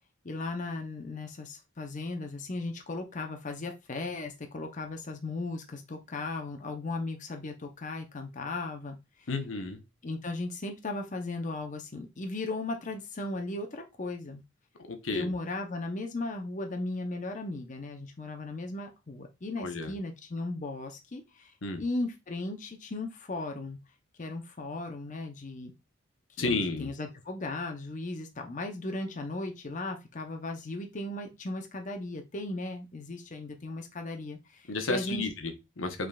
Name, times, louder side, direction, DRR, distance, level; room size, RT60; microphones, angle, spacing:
voice 1, 0.2-9.3 10.0-14.4 15.1-23.8 24.2-25.7 26.4-35.3, left 2 dB, 40° left, 5 dB, 0.7 m, -36 dB
voice 2, 9.3-9.8 14.9-15.3 19.6-19.9 21.6-21.8 26.4-26.9 34.7-36.1, left 3 dB, 75° left, 7 dB, 0.9 m, -32 dB
5.2 x 3.7 x 2.3 m, 0.24 s
head